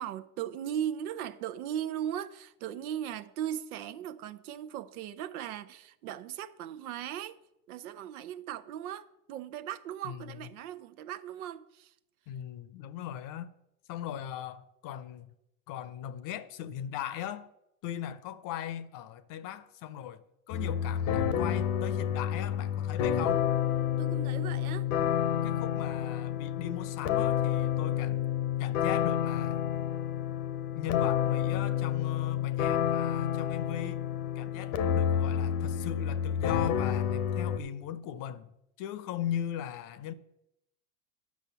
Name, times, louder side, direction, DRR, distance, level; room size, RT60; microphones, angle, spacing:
voice 1, 0.0-7.4 7.7-11.9 24.0-24.9, right 10 dB, 80° right, 0.8 m, -38 dB
voice 2, 10.0-10.4 12.3-13.5 13.9-15.3 15.7-17.5 17.8-23.5 25.4-28.2 28.6-29.6 30.8-34.0 34.3-38.5 38.8-40.1, left 10 dB, 50° left, 0.8 m, -38 dB
sound 1, 20.5-37.6, left 9 dB, 75° left, 1.1 m, -29 dB
10.5 x 6.4 x 6.9 m
supercardioid pair, 120°, 43 cm